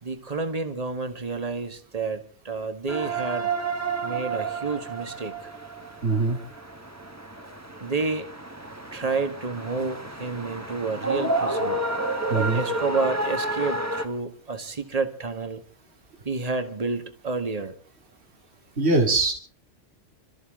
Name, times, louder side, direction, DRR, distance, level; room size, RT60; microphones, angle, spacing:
voice 1, 0.0-3.5 4.0-5.5 7.8-8.3 8.9-11.8 12.3-15.6 16.3-17.8, right 4 dB, 30° right, 7 dB, 1.8 m, -30 dB
sound 1, 2.9-14.1, right 2 dB, 15° right, 1.5 m, -30 dB
voice 2, 6.0-6.4 12.3-12.6 18.8-19.3, right 3 dB, 60° right, 1 dB, 2.7 m, -22 dB
27.5 x 14.0 x 3.8 m, 0.43 s
omnidirectional pair, 1.2 m